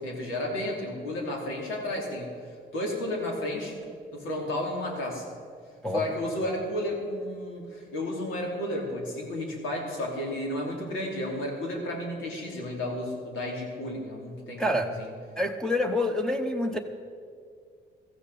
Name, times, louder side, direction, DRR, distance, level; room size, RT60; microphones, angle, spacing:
voice 1, 0.0-2.3 2.7-3.7 4.1-5.2 5.9-15.1, left 1 dB, 85° left, -1 dB, 3.1 m, -32 dB
voice 2, 14.6-14.9 15.4-16.8, left 1 dB, 5° left, 1 dB, 0.9 m, -27 dB
16.0 x 14.0 x 4.2 m, 2.1 s
cardioid pair, 90°, 20 cm